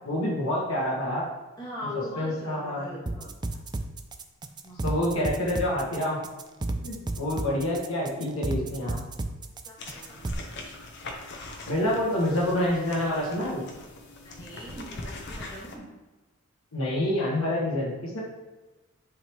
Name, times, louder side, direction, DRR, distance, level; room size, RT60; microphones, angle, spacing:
voice 1, 0.0-1.2 2.2-2.9 4.8-6.2 6.8-9.0 11.7-13.6 16.7-18.2, left 1 dB, 70° left, -4 dB, 1.5 m, -27 dB
voice 2, 1.6-3.3 4.6-4.8 7.2-7.3 9.6-10.2 10.5-10.6 14.2-15.9, left 1 dB, 20° left, -8 dB, 2.1 m, -40 dB
sound 1, 3.1-10.3, right 2 dB, 20° right, 0.3 m, -33 dB
sound 2, 9.8-15.8, left 2 dB, 50° left, 0.9 m, -42 dB
10.0 x 3.6 x 3.1 m, 1.2 s
head